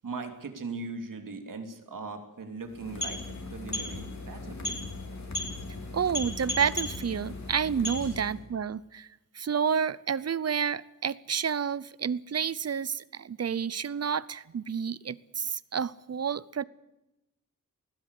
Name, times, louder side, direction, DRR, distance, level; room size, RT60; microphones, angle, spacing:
voice 1, 0.0-4.8 8.0-8.2, right 3 dB, 80° right, 6 dB, 2.8 m, -39 dB
sound 1, 2.6-8.4, left 2 dB, 60° left, 3.6 m, -36 dB
voice 2, 5.9-9.1 9.3-16.6, right 7 dB, 50° right, 20 dB, 0.7 m, -30 dB
20.5 x 16.0 x 8.3 m, 0.93 s
wide cardioid pair, 140°, 32 cm